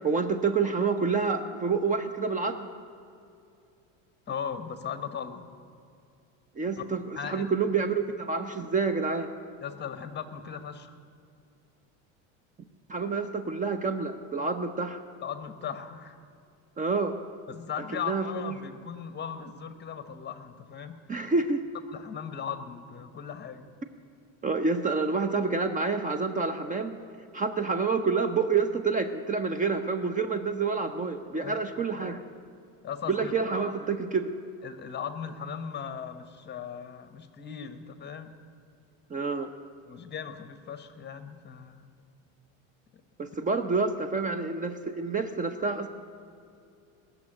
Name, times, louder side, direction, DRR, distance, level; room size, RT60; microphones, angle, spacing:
voice 1, 0.0-2.7 6.6-9.3 12.9-15.0 16.8-17.2 17.9-18.6 21.1-21.6 24.4-27.0 27.3-32.2 33.1-34.3 39.1-39.5 43.2-45.9, right 4 dB, 20° right, 10 dB, 0.7 m, -28 dB
voice 2, 4.3-5.5 7.2-7.5 9.6-10.9 15.2-16.2 17.5-21.0 21.9-23.7 31.4-31.6 32.8-33.3 34.6-38.3 39.9-41.9 42.9-43.0, left 7 dB, 30° left, 10 dB, 1.1 m, -38 dB
20.0 x 6.9 x 9.8 m, 2.5 s
supercardioid pair, 120°, 36 cm